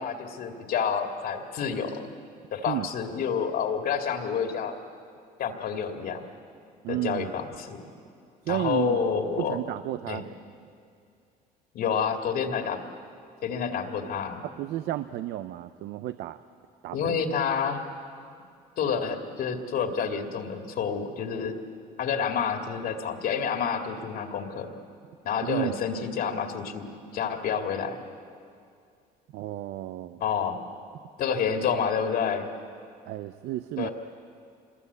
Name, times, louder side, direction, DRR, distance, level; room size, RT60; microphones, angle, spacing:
voice 1, 0.0-2.0 2.5-4.7 5.4-6.2 6.9-7.8 8.5-9.6 10.1-10.2 11.7-12.8 13.4-14.4 16.9-17.8 18.8-21.6 22.0-24.7 25.2-28.0 30.2-30.6 31.2-32.5 33.8-33.9, left 6 dB, 65° left, 4 dB, 2.4 m, -29 dB
voice 2, 6.8-7.3 8.4-9.0 9.4-10.2 14.4-16.4 16.8-17.1 25.4-25.7 29.3-30.2 33.1-33.9, right 14 dB, 80° right, 12 dB, 0.7 m, -32 dB
26.0 x 21.0 x 8.2 m, 2.4 s
cardioid pair, 110°, 17 cm